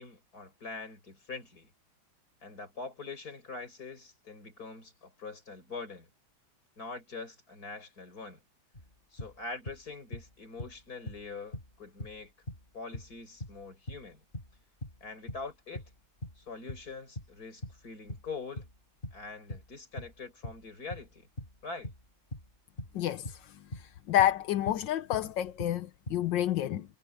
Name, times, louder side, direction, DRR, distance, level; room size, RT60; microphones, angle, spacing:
voice 1, 0.0-1.7 2.4-6.1 6.8-8.4 9.1-12.3 12.7-14.2 15.0-15.8 16.4-18.7 19.1-21.3 21.6-21.9, left 4 dB, 45° left, 5.8 m, -44 dB
sound 1, 8.7-9.8 10.1-11.3 11.5-17.3 17.6-24.8 25.1-26.2, left 1 dB, 25° left, 5.7 m, -42 dB
voice 2, 24.1-26.8, left 12 dB, 70° left, 1.5 m, -28 dB
omnidirectional pair, 2.2 m